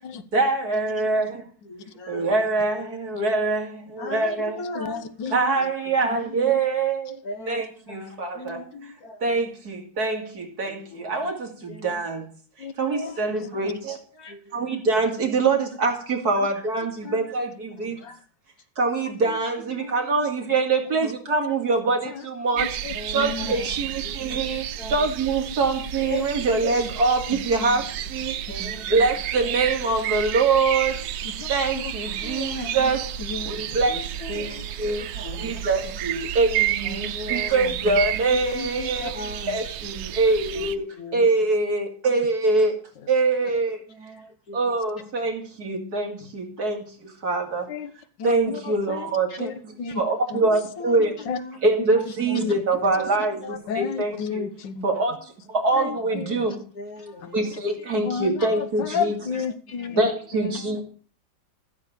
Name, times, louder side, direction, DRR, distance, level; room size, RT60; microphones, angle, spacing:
voice 1, 0.3-1.5 2.1-4.7 5.3-7.2 7.5-8.9 9.2-12.3 12.6-14.0 14.5-18.0 18.8-22.8 23.1-31.0 31.5-33.0 33.5-33.9 34.3-35.1 35.4-42.8 43.1-43.8 44.5-47.7 48.2-51.1 51.6-54.4 54.8-56.6 57.3-59.1 60.0-60.8, right 3 dB, 50° right, 2.8 m, -24 dB
voice 2, 1.7-2.3 4.0-5.7 6.0-6.1 7.2-8.1 8.4-9.4 10.7-11.2 11.7-12.0 13.2-13.4 14.2-14.5 16.3-16.5 17.0-17.2 17.8-18.2 19.2-19.4 19.7-19.9 21.0-21.1 22.9-23.7 24.0-24.4 24.8-25.1 26.0-26.4 28.5-28.8 29.4-29.5 33.9-35.6 36.8-37.9 38.3-39.7 40.5-40.7 41.0-41.3 43.9-44.6 50.4-51.6 51.9-52.4 52.8-53.0 53.4-53.6 54.3-54.5 56.8-57.4 59.7-60.1, left 2 dB, 50° left, 1.8 m, -39 dB
voice 3, 4.8-5.5 12.6-13.7 21.3-21.5 22.1-22.2 22.6-23.6 26.1-26.3 26.8-26.9 27.3-27.9 28.4-28.5 31.2-31.5 31.8-31.9 32.2-32.9 33.2-33.5 35.3-35.4 47.7-47.9 48.2-50.0 50.3-50.5 51.3-51.4 52.3-52.5 52.8-52.9 53.7-54.8 55.7-56.5 57.2-57.3 57.9-60.6, left 6 dB, 70° left, 1.7 m, -33 dB
sound 1, 22.6-40.8, right 11 dB, 90° right, 1.5 m, -31 dB
14.5 x 7.4 x 6.6 m
omnidirectional pair, 2.1 m